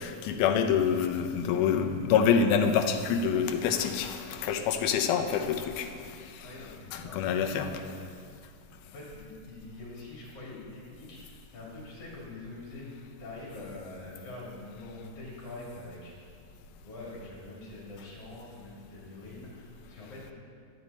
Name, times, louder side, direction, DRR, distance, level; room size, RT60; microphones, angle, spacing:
voice 1, 0.0-6.4 6.9-7.7, left 7 dB, 75° left, 6 dB, 2.0 m, -27 dB
voice 2, 1.4-1.9 6.4-8.1 8.8-12.9 13.2-16.1 16.8-20.3, left 2 dB, 45° left, -7 dB, 4.0 m, -45 dB
11.5 x 8.8 x 4.1 m, 2.2 s
omnidirectional pair, 4.0 m